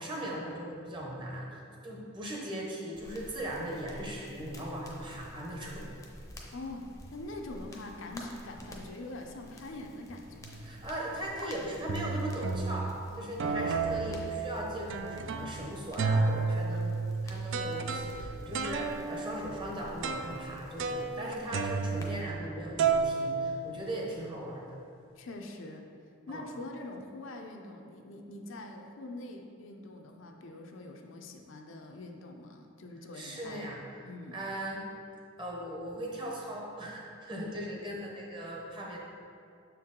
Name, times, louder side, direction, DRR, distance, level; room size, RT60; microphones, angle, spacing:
voice 1, 0.0-5.9 10.6-12.9 13.2-17.0 17.2-24.8 26.3-26.5 33.1-33.8 34.3-34.8 35.4-39.0, right 1 dB, 25° right, -2 dB, 0.9 m, -39 dB
sound 1, 2.9-22.2, equal, 15° left, 0.6 m, -51 dB
voice 2, 6.5-10.7 13.1-13.6 25.2-25.9 26.3-33.7 34.0-34.4, left 2 dB, 60° left, 3 dB, 0.5 m, -44 dB
sound 2, 10.4-10.8 11.4-11.5 11.9-13.0 13.4-15.6 16.0-22.5 22.8-24.2, right 4 dB, 60° right, 0.4 m, -32 dB
6.7 x 4.6 x 3.7 m, 2.4 s
head